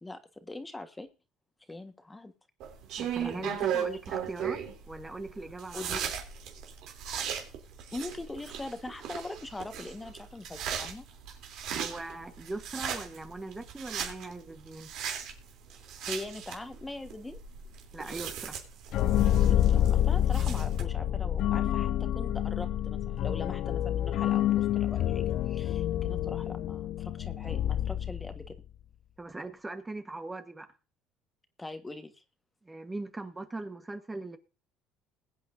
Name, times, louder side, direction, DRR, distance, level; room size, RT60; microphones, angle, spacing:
voice 1, 0.0-1.1 1.7-2.3 3.2-3.8 5.7-6.1 7.9-11.0 16.0-17.4 19.4-28.6 31.6-32.2, left 2 dB, 15° left, 1.5 m, -42 dB
sound 1, 2.6-20.8, right 8 dB, 70° right, 3.3 m, -37 dB
voice 2, 3.0-4.6 4.9-6.0 11.7-14.9 17.9-18.6 29.2-30.7 32.6-34.4, right 2 dB, 15° right, 1.4 m, -40 dB
sound 2, 18.9-28.6, left 11 dB, 65° left, 0.5 m, -28 dB
21.0 x 8.7 x 2.7 m
supercardioid pair, 95°, 0 cm